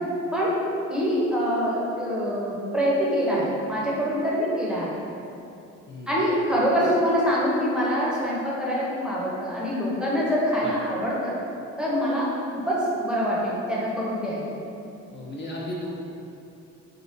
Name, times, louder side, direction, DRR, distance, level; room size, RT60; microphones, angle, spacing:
voice 1, 0.9-4.9 6.1-11.3 11.8-12.3 12.5-14.5, equal, 5° right, -7 dB, 0.7 m, -25 dB
voice 2, 5.9-6.2 10.6-10.7 15.1-16.0, left 1 dB, 40° left, -5 dB, 0.6 m, -35 dB
3.6 x 2.8 x 2.7 m, 2.7 s
cardioid pair, 90°, 30 cm